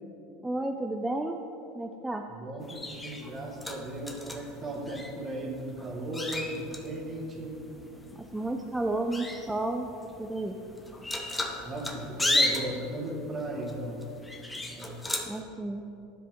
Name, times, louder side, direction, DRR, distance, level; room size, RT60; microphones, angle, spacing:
voice 1, 0.4-1.4 1.7-2.2 8.1-9.9 10.2-10.6 15.3-15.8, right 2 dB, 10° right, 2 dB, 0.5 m, -32 dB
voice 2, 2.3-7.5 11.6-14.0 14.7-14.9, right 1 dB, 30° right, 0 dB, 1.6 m, -36 dB
sound 1, 2.6-15.4, left 2 dB, 15° left, 0.9 m, -35 dB
12.0 x 5.0 x 3.6 m, 3.0 s
hypercardioid pair, 85°, 0 cm